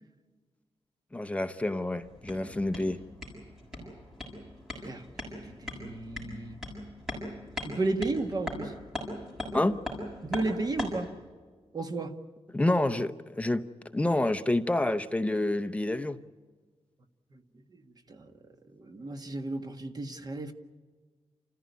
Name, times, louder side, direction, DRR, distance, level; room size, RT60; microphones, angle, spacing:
voice 1, 1.1-3.0 9.5-9.7 12.5-13.6 13.9-16.2, left 1 dB, 10° left, 0.7 m, -28 dB
sound 1, 2.0-11.1, left 1 dB, 5° right, 7.1 m, -40 dB
voice 2, 5.4-6.6 7.6-8.7 10.2-11.1 11.7-12.1 17.3-17.4 18.1-20.5, right 2 dB, 35° right, 1.6 m, -33 dB
28.5 x 15.0 x 9.4 m
wide cardioid pair, 175°, 11 cm